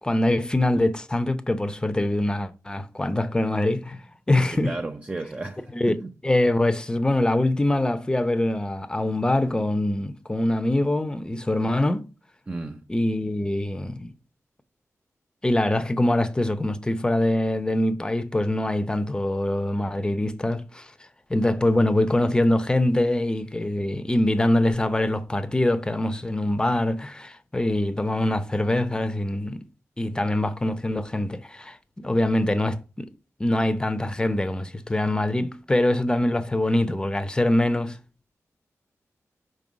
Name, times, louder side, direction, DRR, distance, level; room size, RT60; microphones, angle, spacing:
voice 1, 0.0-4.7 5.7-12.1 12.9-14.1 15.4-20.9 21.3-29.6 30.0-33.1 33.4-38.0, left 1 dB, 15° left, 0.7 m, -24 dB
voice 2, 4.5-6.1 12.5-12.8, right 2 dB, 25° right, 0.6 m, -33 dB
5.4 x 5.2 x 6.2 m
wide cardioid pair, 105°, 5 cm